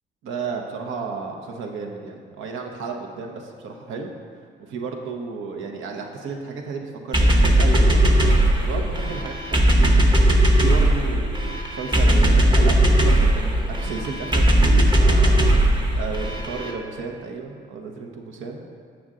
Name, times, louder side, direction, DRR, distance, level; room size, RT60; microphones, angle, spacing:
voice 1, 0.2-4.1 4.6-10.1 10.6-18.6, right 4 dB, 80° right, 2 dB, 0.9 m, -33 dB
sound 1, 7.1-16.7, right 1 dB, 20° right, 0.9 m, -18 dB
7.0 x 6.4 x 3.7 m, 2.2 s
cardioid pair, 90°, 20 cm